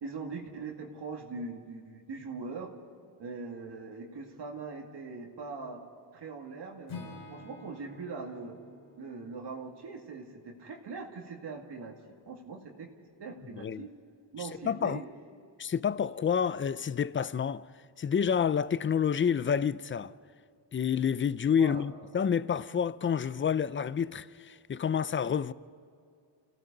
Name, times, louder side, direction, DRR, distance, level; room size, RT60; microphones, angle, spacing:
voice 1, 0.0-2.7 3.2-5.8 6.1-8.5 9.0-12.0 12.3-12.9 13.2-13.9 14.3-15.1 21.6-21.8, right 4 dB, 60° right, 2.3 m, -41 dB
Acoustic guitar / Strum, 6.9-10.9, left 4 dB, 90° left, 5.4 m, -49 dB
voice 2, 14.6-15.0 15.6-17.7 18.0-20.1 20.7-25.5, left 7 dB, 25° left, 0.4 m, -29 dB
29.5 x 17.0 x 5.4 m
wide cardioid pair, 140°, 47 cm